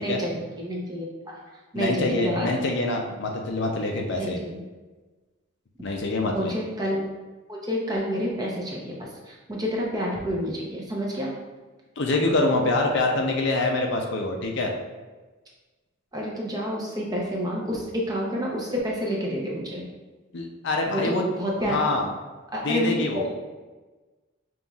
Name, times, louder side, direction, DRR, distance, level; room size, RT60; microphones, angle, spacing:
voice 1, 0.0-1.3 1.7-2.6 4.2-4.6 6.3-7.0 7.5-8.9 9.3-11.3 16.1-19.8 20.9-21.8 22.5-23.3, equal, 20° right, -3 dB, 0.6 m, -29 dB
voice 2, 1.7-4.4 5.8-6.6 12.0-14.7 20.3-21.3 21.6-22.1 22.6-23.3, left 2 dB, 55° left, 1 dB, 0.5 m, -25 dB
5.3 x 3.0 x 2.3 m, 1.3 s
head